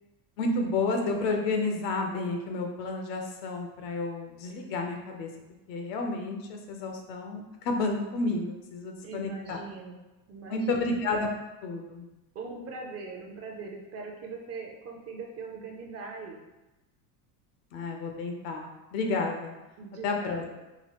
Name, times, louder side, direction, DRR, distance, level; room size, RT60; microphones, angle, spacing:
voice 1, 0.4-5.3 5.7-9.6 10.5-11.3 11.6-12.0 17.7-19.5 20.0-20.4, left 3 dB, 85° left, 3 dB, 0.8 m, -31 dB
voice 2, 9.0-11.0 12.3-16.4 19.8-20.6, right 4 dB, 35° right, 1 dB, 0.4 m, -41 dB
3.9 x 2.3 x 3.0 m, 1.0 s
supercardioid pair, 125°, 48 cm